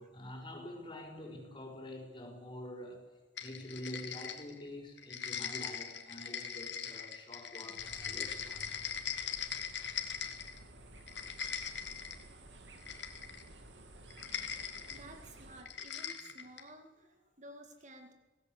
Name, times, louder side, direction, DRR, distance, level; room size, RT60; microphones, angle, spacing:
voice 1, 0.0-3.1 3.4-8.8, left 1 dB, 25° left, 1 dB, 6.1 m, -46 dB
sound 1, 3.4-4.7 5.0-10.6 11.0-12.2 12.8-13.5 14.1-15.0 15.7-16.7, left 8 dB, 80° left, 2.4 m, -41 dB
sound 2, 7.8-15.6, right 1 dB, 80° right, 2.8 m, -54 dB
voice 2, 14.9-18.1, right 1 dB, 45° right, 6 dB, 2.1 m, -54 dB
26.0 x 17.5 x 8.2 m, 1.2 s
head